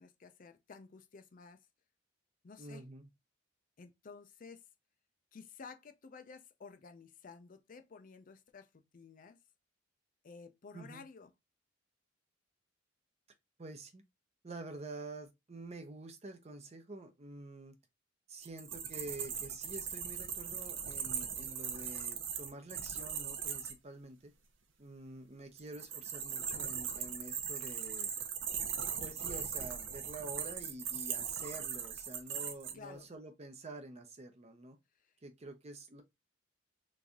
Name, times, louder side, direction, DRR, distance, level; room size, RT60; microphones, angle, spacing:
voice 1, 0.0-1.6 2.4-2.8 3.8-4.6 5.3-9.4 10.2-11.3 32.7-33.1 35.0-35.1, left 5 dB, 45° left, 0.4 m, -53 dB
voice 2, 2.6-3.1 10.7-11.0 13.6-14.0 14.4-17.8 18.3-24.3 24.8-28.1 29.0-34.8 35.2-36.0, right 2 dB, 35° right, 0.7 m, -48 dB
sound 1, 18.4-23.7 25.6-32.7, right 7 dB, 75° right, 0.7 m, -39 dB
3.1 x 2.7 x 3.4 m
head